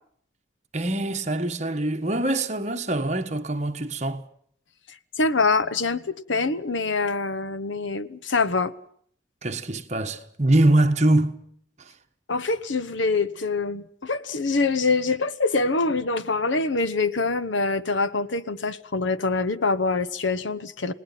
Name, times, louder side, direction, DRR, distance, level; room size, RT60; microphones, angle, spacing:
voice 1, 0.7-4.2 9.4-11.4 11.8-11.9, right 1 dB, 35° right, 1.4 m, -23 dB
voice 2, 5.2-8.7 12.3-20.9, left 3 dB, 75° left, 1.0 m, -25 dB
29.0 x 19.0 x 5.8 m
head